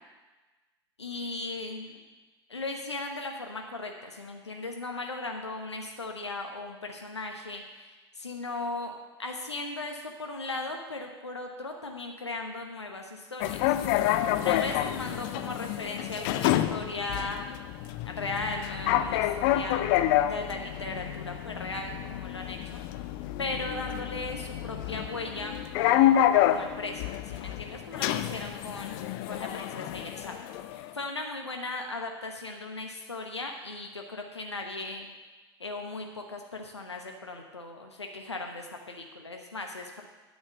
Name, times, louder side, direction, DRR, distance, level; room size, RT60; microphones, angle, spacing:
voice 1, 1.0-2.0 2.5-13.6 14.4-17.5 18.0-19.9 20.3-22.8 23.4-30.4 30.9-35.1 35.6-40.0, left 2 dB, 85° left, 3 dB, 1.0 m, -37 dB
sound 1, 13.4-30.9, left 12 dB, 55° left, 0.6 m, -28 dB
10.5 x 6.4 x 7.5 m, 1.2 s
figure-of-eight pair, 80°, 14 cm